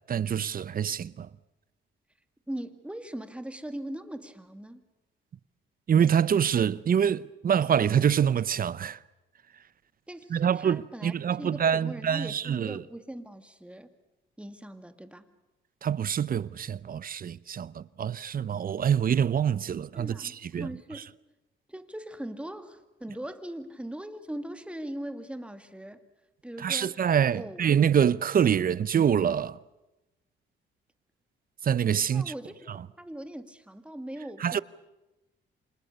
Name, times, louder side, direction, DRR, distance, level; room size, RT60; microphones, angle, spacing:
voice 1, 0.1-1.3 5.9-9.0 10.3-12.8 15.8-20.7 26.6-29.6 31.6-32.3 32.7-32.8 34.4-34.6, right 8 dB, 45° right, 0.8 m, -25 dB
voice 2, 2.5-4.8 10.1-13.9 14.4-15.3 19.9-21.1 21.7-26.0 26.4-27.0 27.3-27.7 32.1-34.6, right 1 dB, 5° right, 2.3 m, -40 dB
29.0 x 26.0 x 6.8 m
cardioid pair, 90°, 20 cm